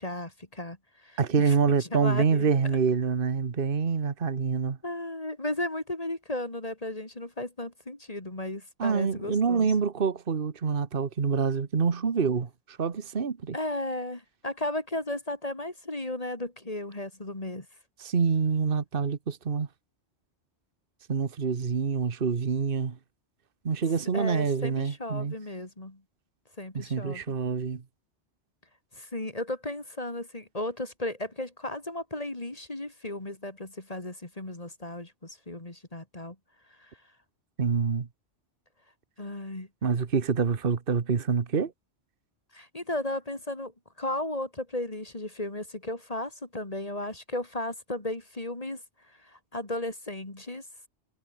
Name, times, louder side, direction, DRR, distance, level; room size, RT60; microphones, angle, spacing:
voice 1, 0.0-1.2 1.4-2.5 4.8-9.7 13.5-17.7 24.1-26.0 26.6-27.2 28.9-36.4 36.8-36.9 39.2-39.7 42.5-43.7 44.0-48.8 49.2-50.6, left 1 dB, 30° left, 2.7 m, -35 dB
voice 2, 1.2-4.8 8.8-13.6 18.0-19.7 21.1-23.0 23.6-25.3 26.7-27.8 37.6-38.1 39.8-41.7, right 5 dB, 50° right, 1.5 m, -26 dB
omnidirectional pair, 1.2 m